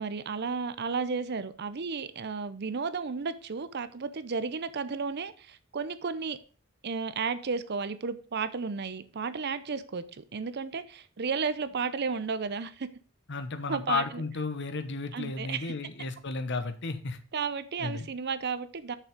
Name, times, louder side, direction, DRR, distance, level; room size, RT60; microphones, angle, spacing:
voice 1, 0.0-6.4 6.8-12.9 13.7-14.2 15.1-15.7 17.3-19.0, right 5 dB, 50° right, 0.6 m, -33 dB
voice 2, 13.3-17.2 17.8-18.1, left 3 dB, 55° left, 1.0 m, -33 dB
6.7 x 6.0 x 5.2 m
head